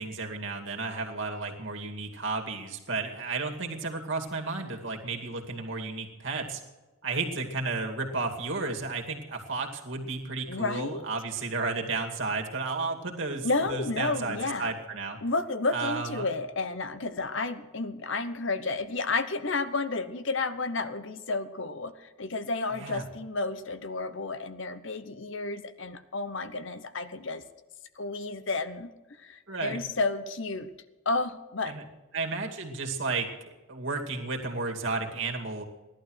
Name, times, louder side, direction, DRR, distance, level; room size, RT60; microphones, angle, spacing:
voice 1, 0.0-6.6 7.0-15.2 15.7-16.3 22.7-23.0 29.5-29.8 31.7-31.8 32.1-35.7, right 3 dB, 60° right, 2 dB, 2.4 m, -33 dB
voice 2, 10.5-11.1 13.4-14.7 15.2-27.4 28.0-28.9 29.2-30.7 31.0-31.8, left 3 dB, 60° left, 12 dB, 0.9 m, -31 dB
17.0 x 11.5 x 6.4 m, 1.2 s
head